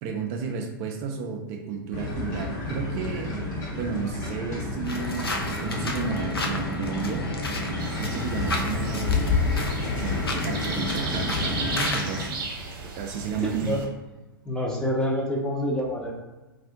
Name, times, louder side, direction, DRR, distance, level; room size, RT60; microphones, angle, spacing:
voice 1, 0.0-3.4 3.7-5.3 5.6-7.2 7.9-9.4 10.0-10.2 10.4-12.5 12.8-13.8, right 5 dB, 40° right, 2 dB, 0.4 m, -32 dB
sound 1, 1.9-11.9, left 3 dB, 55° left, 1.1 m, -30 dB
sound 2, 4.8-12.3, left 2 dB, 90° left, 0.6 m, -33 dB
sound 3, 7.8-13.9, right 3 dB, 60° right, 0.9 m, -35 dB
voice 2, 13.2-13.8 14.4-16.1, equal, 5° left, -3 dB, 0.7 m, -27 dB
2.6 x 2.4 x 3.6 m, 1.1 s
hypercardioid pair, 105°, 12 cm